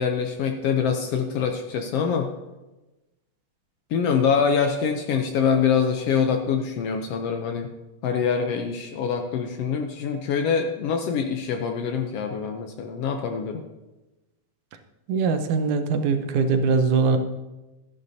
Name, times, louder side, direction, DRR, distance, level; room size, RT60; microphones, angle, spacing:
voice 1, 0.0-2.3 3.9-7.7 8.0-13.6, left 6 dB, 75° left, 5 dB, 1.5 m, -24 dB
voice 2, 15.1-17.2, right 5 dB, 90° right, 8 dB, 2.3 m, -22 dB
13.5 x 11.0 x 2.7 m, 1.1 s
omnidirectional pair, 3.3 m